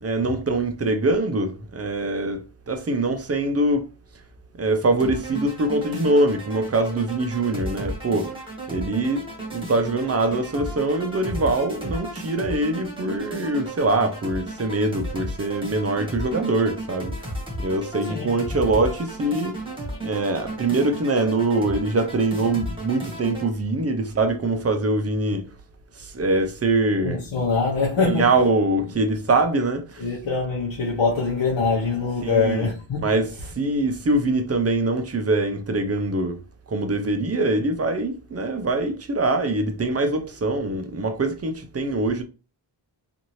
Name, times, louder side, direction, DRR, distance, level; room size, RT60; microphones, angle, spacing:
voice 1, 0.0-3.9 4.6-8.4 8.7-19.6 20.0-25.5 26.0-27.3 28.0-30.0 32.2-32.7 33.0-33.3 33.6-36.4 36.7-42.2, right 2 dB, 35° right, 0.5 m, -23 dB
sound 1, 5.0-23.5, right 1 dB, 10° right, 1.1 m, -34 dB
voice 2, 27.0-28.3 30.0-33.1, left 4 dB, 75° left, 0.9 m, -23 dB
2.7 x 2.5 x 3.0 m
wide cardioid pair, 110°, 45 cm